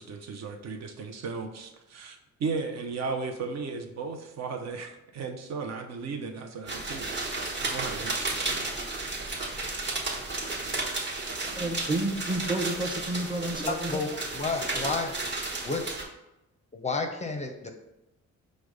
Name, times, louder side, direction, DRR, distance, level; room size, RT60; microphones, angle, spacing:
voice 1, 0.0-7.2 7.5-8.7, right 4 dB, 60° right, 4 dB, 0.6 m, -36 dB
sound 1, 6.7-16.0, right 2 dB, 35° right, 1.2 m, -33 dB
voice 2, 11.5-14.0, right 1 dB, 15° right, 4 dB, 0.7 m, -30 dB
voice 3, 13.7-15.1 15.6-16.0 16.7-17.7, left 3 dB, 25° left, 4 dB, 0.5 m, -31 dB
5.0 x 2.1 x 4.8 m, 0.96 s
cardioid pair, 90°, 30 cm